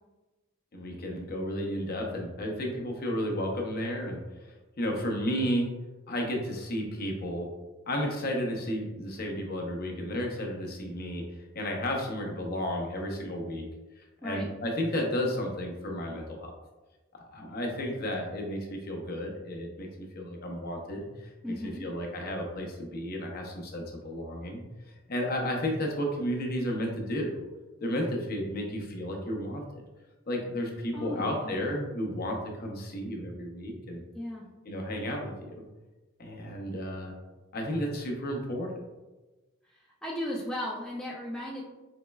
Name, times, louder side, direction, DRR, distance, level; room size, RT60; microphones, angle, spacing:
voice 1, 0.7-5.7 6.1-7.5 7.9-13.7 14.2-16.5 17.1-24.6 24.9-27.4 27.8-29.8 30.3-34.0 34.6-35.6 36.2-37.2 37.5-38.7, equal, 45° left, 1 dB, 0.6 m, -33 dB
voice 2, 21.4-21.9 30.9-31.7 34.1-34.5 39.7-41.6, left 1 dB, 5° left, -4 dB, 0.3 m, -36 dB
4.2 x 3.0 x 2.2 m, 1.1 s
head